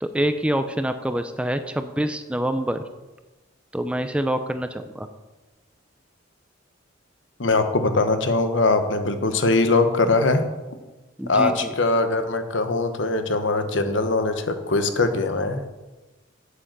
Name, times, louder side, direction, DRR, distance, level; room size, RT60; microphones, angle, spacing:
voice 1, 0.0-2.8 3.7-5.1 11.2-11.7, right 1 dB, 5° right, 9 dB, 0.5 m, -26 dB
voice 2, 7.4-10.4 11.3-15.7, left 3 dB, 70° left, 8 dB, 1.1 m, -21 dB
8.2 x 7.8 x 7.6 m, 1.1 s
head